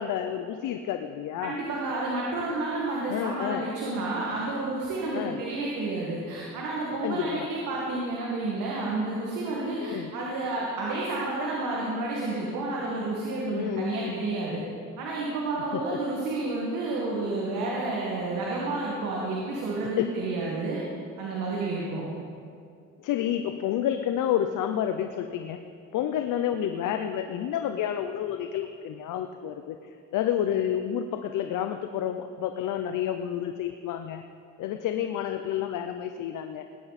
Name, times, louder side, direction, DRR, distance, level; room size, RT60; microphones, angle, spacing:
voice 1, 0.0-1.6 3.1-3.6 5.1-5.4 7.0-7.5 9.8-10.1 13.5-14.2 15.7-16.0 20.0-20.1 21.6-21.7 23.0-25.6 25.9-29.8 30.1-34.2 34.6-36.6, left 10 dB, 75° left, 7 dB, 0.7 m, -29 dB
voice 2, 1.4-14.6 15.0-20.8 21.2-22.0, right 2 dB, 85° right, -4 dB, 2.1 m, -30 dB
19.0 x 9.8 x 4.2 m, 2.4 s
cardioid pair, 80°, 31 cm